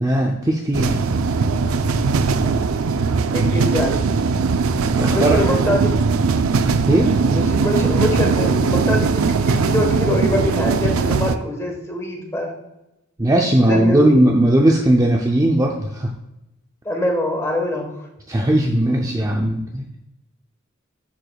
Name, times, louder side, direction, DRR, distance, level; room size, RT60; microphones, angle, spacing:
voice 1, 0.0-1.2 4.9-5.4 6.9-7.1 13.2-16.1 18.3-19.9, right 1 dB, 15° right, 1 dB, 0.5 m, -18 dB
sound 1, 0.7-11.4, right 4 dB, 90° right, 0.4 m, -19 dB
voice 2, 2.4-2.7 3.3-4.0 5.1-6.1 7.2-12.6 13.6-14.2 16.8-17.9, left 1 dB, 15° left, 1 dB, 1.2 m, -24 dB
11.0 x 4.7 x 2.3 m, 0.90 s
head